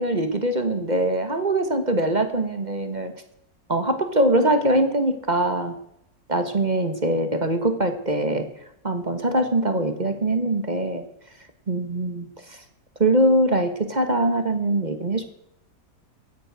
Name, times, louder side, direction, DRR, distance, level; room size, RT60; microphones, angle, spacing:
voice 1, 0.0-3.1 3.7-5.8 6.3-8.5 8.8-11.0 11.7-12.6 13.0-15.2, right 1 dB, 30° right, 7 dB, 1.4 m, -22 dB
15.5 x 10.5 x 6.3 m, 0.76 s
omnidirectional pair, 1.7 m